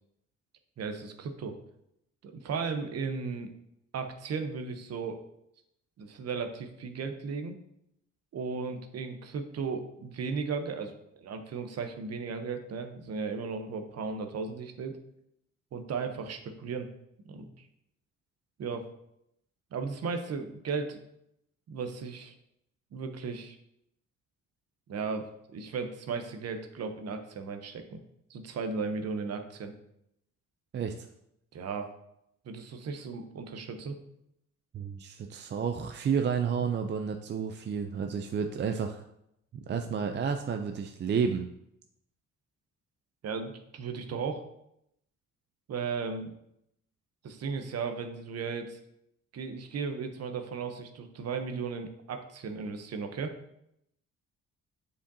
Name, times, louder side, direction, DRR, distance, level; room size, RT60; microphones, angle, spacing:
voice 1, 0.8-1.6 2.2-3.5 3.9-5.2 6.0-7.6 8.3-10.9 11.2-15.0 15.7-16.9 17.2-17.7 18.6-18.8 19.7-21.0 21.7-22.3 22.9-23.6 24.9-28.0 28.3-29.7 31.5-31.9 32.4-34.0 43.2-44.5 45.7-46.4 47.2-48.8 49.3-53.4, right 5 dB, 55° right, 6 dB, 0.8 m, -35 dB
voice 2, 30.7-31.1 34.7-39.0 39.5-41.5, right 6 dB, 35° right, 6 dB, 0.4 m, -31 dB
7.1 x 5.0 x 2.7 m, 0.78 s
cardioid pair, 90°, 30 cm